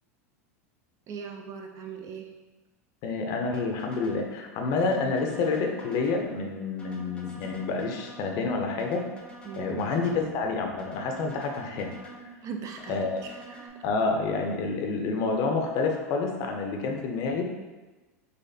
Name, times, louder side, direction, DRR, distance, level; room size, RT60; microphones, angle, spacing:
voice 1, 1.1-2.3 9.4-9.9 12.4-13.7, right 6 dB, 40° right, 3 dB, 0.5 m, -39 dB
voice 2, 3.0-9.0 9.5-12.2 12.9-13.2 13.8-17.4, left 4 dB, 50° left, 2 dB, 0.6 m, -28 dB
sound 1, 3.5-4.3 4.8-6.3 6.8-8.3 8.8-10.3 10.8-12.3 12.8-13.7, right 2 dB, 10° left, 0.6 m, -47 dB
4.1 x 2.5 x 2.7 m, 1.2 s
hypercardioid pair, 95°, 8 cm